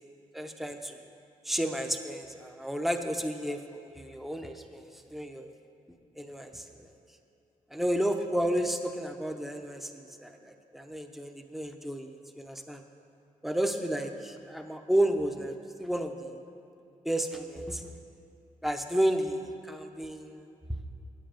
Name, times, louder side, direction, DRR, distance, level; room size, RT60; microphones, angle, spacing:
voice 1, 0.3-1.0 1.4-3.6 3.9-5.5 6.2-6.9 7.7-12.8 13.4-16.4 17.0-17.9 18.6-20.5, right 1 dB, ahead, 5 dB, 0.6 m, -32 dB
9.4 x 8.4 x 5.1 m, 2.8 s
cardioid pair, 105°, 15 cm